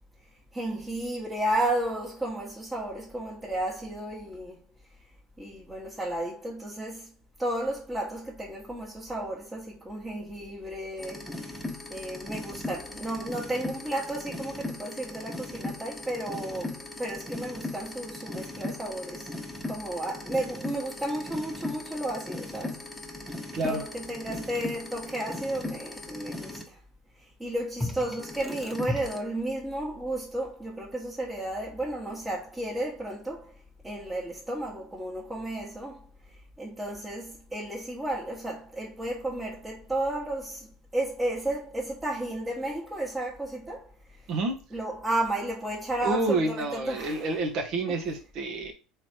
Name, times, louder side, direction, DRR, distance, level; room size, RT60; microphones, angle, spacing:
voice 1, 0.5-4.6 5.4-7.1 7.4-11.3 11.9-19.3 19.6-22.8 23.6-26.8 27.2-33.5 33.8-36.1 36.6-40.7 40.9-43.9 44.7-47.3 47.9-48.0, right 1 dB, 15° right, 1.3 m, -33 dB
sound 1, 11.0-26.6 27.8-29.2, left 2 dB, 5° left, 1.0 m, -38 dB
voice 2, 23.5-23.8 44.3-44.6 46.0-48.7, right 2 dB, 55° right, 1.0 m, -28 dB
3.3 x 3.1 x 4.4 m
hypercardioid pair, 70°, 0 cm